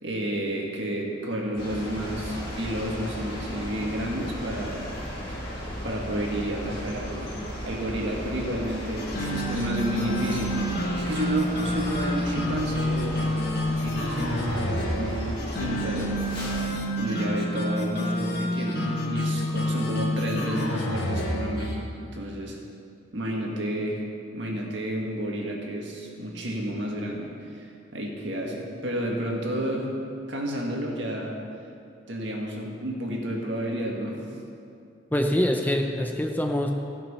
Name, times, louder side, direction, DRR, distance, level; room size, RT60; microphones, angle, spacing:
voice 1, 0.0-4.9 5.3-5.4 5.8-7.4 7.6-16.1 17.0-21.7 22.0-22.6 23.1-24.0 24.3-27.7 27.9-29.9 30.3-31.4 32.1-34.2, right 1 dB, 65° right, -1 dB, 1.8 m, -31 dB
sound 1, 1.6-16.7, equal, 25° left, 2.2 m, -36 dB
sound 2, 9.0-21.8, equal, 55° left, 1.4 m, -28 dB
voice 2, 35.1-36.7, left 1 dB, 10° left, 3 dB, 0.5 m, -24 dB
16.0 x 6.0 x 5.6 m, 2.5 s
head